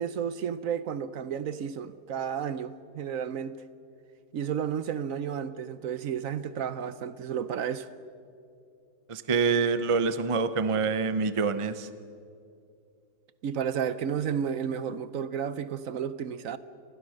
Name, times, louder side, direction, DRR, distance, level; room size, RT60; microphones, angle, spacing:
voice 1, 0.0-3.6 4.3-7.9 13.4-16.6, right 8 dB, 60° right, 1.0 m, -32 dB
voice 2, 9.1-11.9, right 4 dB, 40° right, 0.4 m, -26 dB
29.0 x 20.5 x 6.4 m
omnidirectional pair, 1.8 m